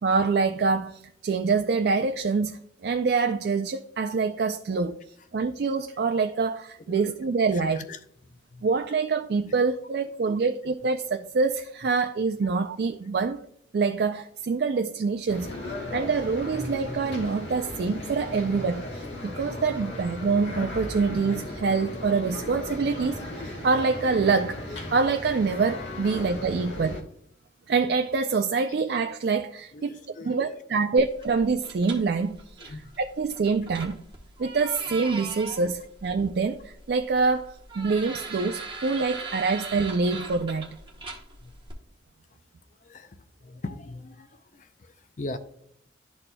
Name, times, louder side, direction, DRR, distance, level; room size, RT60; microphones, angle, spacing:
voice 1, 0.0-5.0 5.3-7.8 8.6-13.4 13.7-15.5 15.9-27.1 27.7-32.4 32.6-34.0 34.4-40.7, right 4 dB, 60° right, 0.3 m, -26 dB
voice 2, 7.5-8.0 8.3-8.7 12.4-12.5 15.8-16.0 26.0-26.2 29.7-30.9 32.6-33.0 41.4-41.5 42.8-45.4, left 2 dB, 40° left, 0.4 m, -41 dB
sound 1, 15.3-27.0, left 1 dB, 70° left, 1.3 m, -36 dB
sound 2, 31.0-41.7, right 4 dB, 25° right, 1.1 m, -41 dB
12.0 x 4.2 x 2.2 m
head